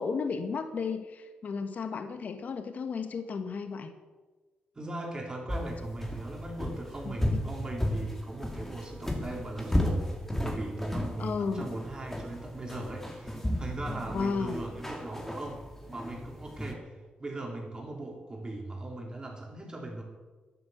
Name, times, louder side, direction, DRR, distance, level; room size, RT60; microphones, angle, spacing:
voice 1, 0.0-3.9 7.0-7.1 11.2-11.6 14.1-14.6, left 5 dB, 55° left, 7 dB, 1.3 m, -33 dB
voice 2, 4.7-10.1 10.4-15.6 15.9-16.9 17.2-20.0, right 2 dB, 25° right, 0 dB, 3.6 m, -39 dB
sound 1, 5.5-16.7, left 1 dB, 10° left, 2.3 m, -34 dB
11.5 x 11.0 x 8.1 m, 1.3 s
cardioid pair, 120°, 3 cm